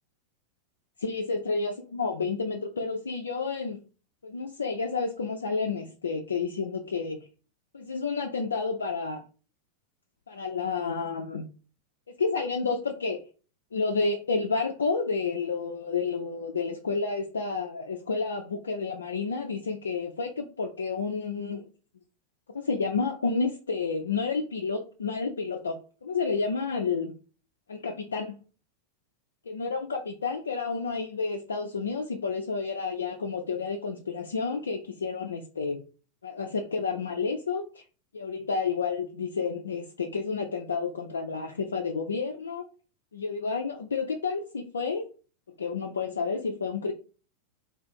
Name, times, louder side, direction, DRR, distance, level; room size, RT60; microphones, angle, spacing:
voice 1, 1.0-3.8 4.2-7.2 7.7-9.2 10.3-11.5 12.2-13.2 13.7-21.7 22.5-27.1 27.7-28.4 29.5-35.8 36.2-37.8 38.1-42.7 43.1-45.1 45.6-46.9, left 4 dB, 70° left, 3 dB, 0.4 m, -30 dB
3.4 x 2.5 x 4.2 m, 0.37 s
figure-of-eight pair, 90°, 0 cm